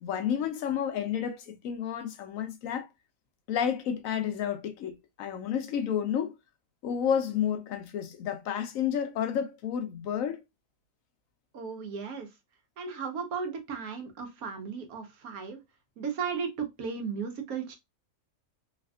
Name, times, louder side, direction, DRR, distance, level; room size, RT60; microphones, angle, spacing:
voice 1, 0.0-2.9 3.5-6.3 6.8-10.4, left 8 dB, 70° left, 1.0 m, -31 dB
voice 2, 11.5-12.3 12.8-15.6 16.0-17.8, right 6 dB, 75° right, 1.3 m, -35 dB
3.3 x 2.5 x 2.3 m
omnidirectional pair, 1.5 m